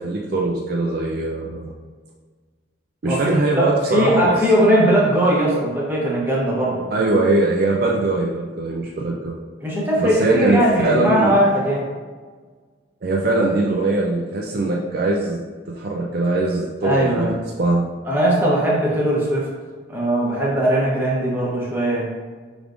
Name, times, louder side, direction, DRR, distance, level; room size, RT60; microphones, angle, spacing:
voice 1, 0.0-1.7 3.0-4.4 6.9-9.4 10.0-11.4 13.0-15.4 15.7-17.3 17.6-17.9, right 2 dB, 50° right, -1 dB, 0.4 m, -21 dB
voice 2, 3.1-6.9 9.6-11.8 16.8-17.3 18.1-19.5 19.9-22.0, right 1 dB, 10° right, -6 dB, 0.9 m, -19 dB
4.8 x 3.3 x 2.5 m, 1.5 s
head